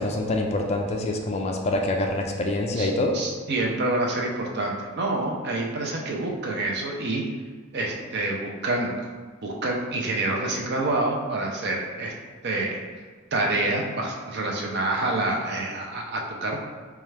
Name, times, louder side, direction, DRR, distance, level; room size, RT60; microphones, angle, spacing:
voice 1, 0.0-3.2, left 2 dB, 30° left, 2 dB, 0.3 m, -25 dB
voice 2, 3.1-7.2 7.7-8.9 9.4-12.1 12.4-12.8 13.3-16.6, right 2 dB, 50° right, 0 dB, 0.5 m, -27 dB
4.2 x 2.3 x 3.2 m, 1.5 s
head